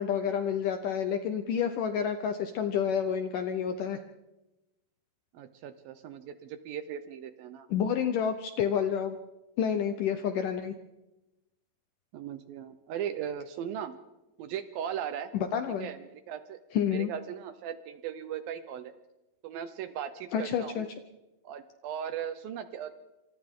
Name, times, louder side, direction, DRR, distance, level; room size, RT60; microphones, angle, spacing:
voice 1, 0.0-4.0 7.7-9.2 9.6-10.8 15.3-15.9 16.7-17.1 20.3-20.9, left 8 dB, 75° left, 7 dB, 2.0 m, -29 dB
voice 2, 5.3-7.7 12.1-14.0 14.4-15.3 15.8-16.6 16.9-18.9 19.4-20.8 21.4-23.0, right 9 dB, 75° right, 10 dB, 2.3 m, -38 dB
27.0 x 26.0 x 3.7 m, 1.0 s
omnidirectional pair, 4.8 m